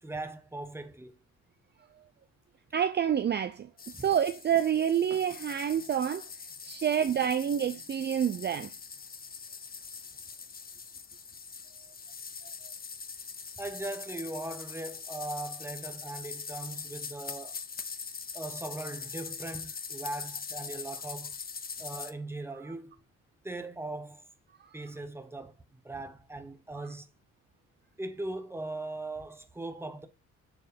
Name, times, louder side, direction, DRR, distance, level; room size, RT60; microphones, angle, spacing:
voice 1, 0.0-1.1 3.9-4.0 13.6-17.6 18.3-21.4 21.8-22.9 23.4-24.2 24.7-25.5 25.8-27.1 28.0-30.1, right 2 dB, 10° right, 1.0 m, -39 dB
voice 2, 2.7-3.7 4.0-6.2 6.6-8.7, right 9 dB, 35° right, 0.5 m, -28 dB
sound 1, 3.8-22.1, left 5 dB, 30° left, 0.8 m, -42 dB
7.1 x 3.2 x 5.1 m
cardioid pair, 90°, 30 cm